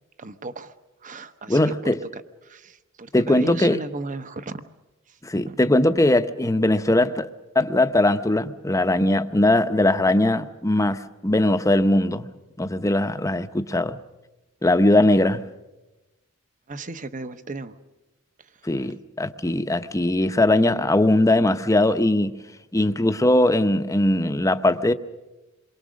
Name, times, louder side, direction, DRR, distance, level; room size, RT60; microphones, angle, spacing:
voice 1, 0.2-0.8 1.0-4.7 5.1-5.2 5.5-5.6 16.7-17.8 18.4-18.9, right 3 dB, 35° right, 0.9 m, -36 dB
voice 2, 1.5-2.0 3.1-3.8 5.2-7.3 7.5-12.2 12.6-14.0 14.6-15.4 18.6-22.3 22.7-24.9, left 1 dB, 15° left, 0.7 m, -20 dB
27.5 x 23.0 x 6.4 m
head